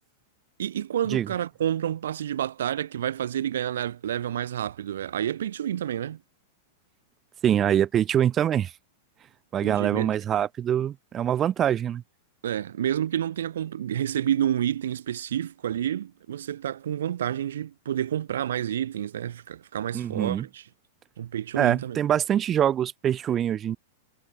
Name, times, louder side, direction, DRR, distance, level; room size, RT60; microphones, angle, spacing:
voice 1, 0.6-6.2 9.6-10.2 12.4-20.6 21.2-22.0, right 10 dB, 85° right, 6.5 m, -29 dB
voice 2, 7.4-8.7 9.5-12.0 19.9-20.4 21.5-23.8, right 10 dB, 25° right, 6.7 m, -24 dB
supercardioid pair, 145°, 0 cm